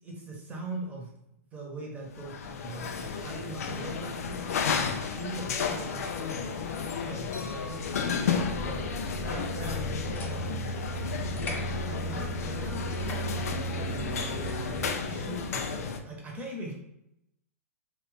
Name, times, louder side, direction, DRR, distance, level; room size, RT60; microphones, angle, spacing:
voice 1, 0.0-1.1 1.5-4.5 5.0-7.8 8.5-9.8 10.3-10.8 11.5-16.7, right 2 dB, 15° right, -2 dB, 1.0 m, -41 dB
sound 1, 2.1-16.0, left 6 dB, 70° left, 0.4 m, -33 dB
sound 2, 8.1-14.9, right 3 dB, 5° left, 1.1 m, -36 dB
sound 3, 9.6-14.8, left 3 dB, 20° left, 0.6 m, -46 dB
2.8 x 2.5 x 3.3 m, 0.83 s
hypercardioid pair, 115°, 8 cm